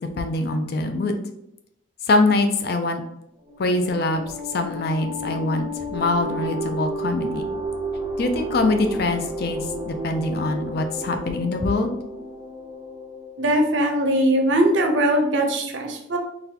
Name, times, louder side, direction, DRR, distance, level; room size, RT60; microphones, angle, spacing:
voice 1, 0.2-1.2 2.1-3.0 3.6-4.2 4.5-5.7 5.9-7.5 8.2-11.9, left 2 dB, 55° left, 6 dB, 0.4 m, -23 dB
sound 1, 3.4-13.7, right 1 dB, 15° right, 0.5 m, -32 dB
voice 2, 13.4-16.2, right 1 dB, 70° right, 3 dB, 0.5 m, -20 dB
3.9 x 2.3 x 2.7 m, 0.81 s
head